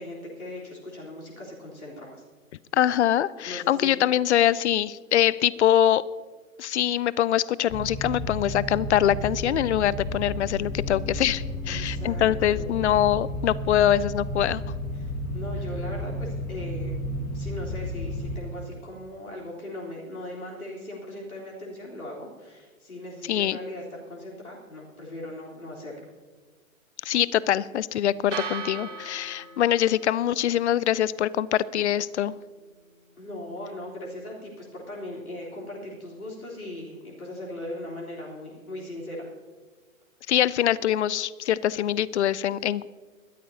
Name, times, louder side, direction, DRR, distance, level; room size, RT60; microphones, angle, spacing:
voice 1, 0.0-2.2 3.4-4.0 11.7-12.7 14.9-17.0 17.3-26.1 33.2-39.3, left 1 dB, 90° left, -4 dB, 3.7 m, -39 dB
voice 2, 2.7-6.0 6.6-14.6 23.3-23.6 27.0-32.3 40.3-42.9, left 11 dB, 55° left, 21 dB, 0.5 m, -23 dB
sound 1, 7.7-18.4, left 1 dB, 25° left, 1.7 m, -32 dB
sound 2, 28.3-36.4, right 5 dB, 60° right, 2.3 m, -43 dB
21.0 x 13.5 x 2.8 m, 1.4 s
figure-of-eight pair, 120°, 42 cm